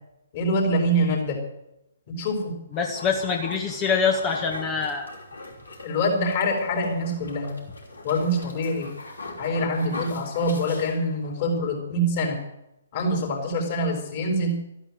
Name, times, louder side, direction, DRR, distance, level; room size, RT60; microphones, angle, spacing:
voice 1, 0.3-1.4 2.1-2.6 5.8-7.5 8.0-8.9 9.4-12.4 12.9-14.7, equal, 40° left, 2 dB, 5.5 m, -25 dB
sound 1, 2.7-11.4, left 2 dB, 70° left, 5.4 m, -40 dB
voice 2, 2.7-5.1, left 5 dB, 20° left, 3 dB, 1.8 m, -25 dB
14.0 x 11.0 x 7.8 m, 0.85 s
figure-of-eight pair, 130°, 0 cm